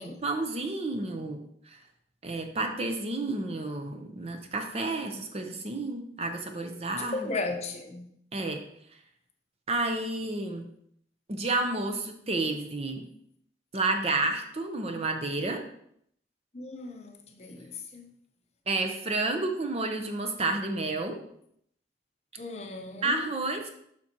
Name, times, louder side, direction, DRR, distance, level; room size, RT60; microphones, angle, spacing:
voice 1, 0.0-1.4 1.7-1.8 2.2-7.3 8.3-8.6 9.7-10.7 11.3-13.0 13.7-15.6 18.7-21.2 23.0-23.7, right 2 dB, 35° right, 0.7 m, -30 dB
voice 2, 7.0-8.1 16.5-18.1 22.4-23.2, left 3 dB, 35° left, 0.7 m, -36 dB
7.2 x 6.0 x 2.9 m
head